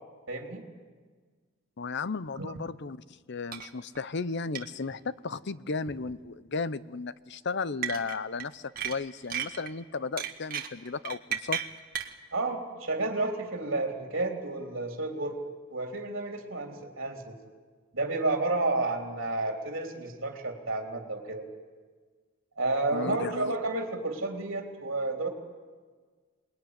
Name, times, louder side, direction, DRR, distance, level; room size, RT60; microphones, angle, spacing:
voice 1, 0.3-0.7 2.4-2.5 12.3-15.4 15.7-17.4 17.9-21.4 22.6-25.3, right 2 dB, 65° right, 2 dB, 3.4 m, -31 dB
voice 2, 1.8-11.6 22.9-23.6, left 4 dB, 60° left, 16 dB, 0.7 m, -35 dB
sound 1, 3.5-3.7 3.9-4.0 4.5-4.7 5.9-6.1 7.8-8.5 8.8-9.7 10.2-12.1, right 8 dB, 45° right, 1.8 m, -34 dB
27.5 x 20.5 x 9.8 m, 1.5 s
head